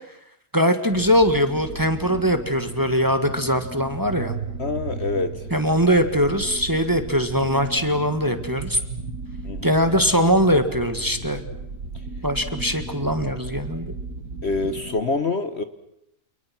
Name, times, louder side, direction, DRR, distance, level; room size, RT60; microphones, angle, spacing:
voice 1, 0.5-4.3 5.5-8.8 9.6-11.4 12.2-13.9, equal, 15° right, 8 dB, 1.8 m, -21 dB
sound 1, 0.9-15.0, right 3 dB, 75° right, 2.3 m, -35 dB
voice 2, 4.6-5.5 9.4-9.8 14.4-15.6, left 3 dB, 45° left, 11 dB, 1.4 m, -26 dB
29.5 x 29.0 x 6.1 m, 0.77 s
omnidirectional pair, 1.7 m